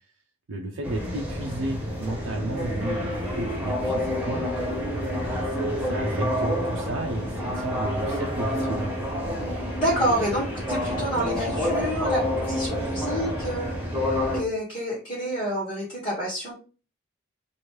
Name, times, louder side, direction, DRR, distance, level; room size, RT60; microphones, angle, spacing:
voice 1, 0.5-9.1, right 2 dB, 75° right, 1 dB, 0.5 m, -34 dB
sound 1, 0.8-14.4, left 1 dB, 10° right, 0.7 m, -28 dB
voice 2, 9.8-14.0 14.3-16.5, right 1 dB, 25° left, -8 dB, 1.2 m, -28 dB
3.1 x 2.5 x 3.1 m, 0.35 s
head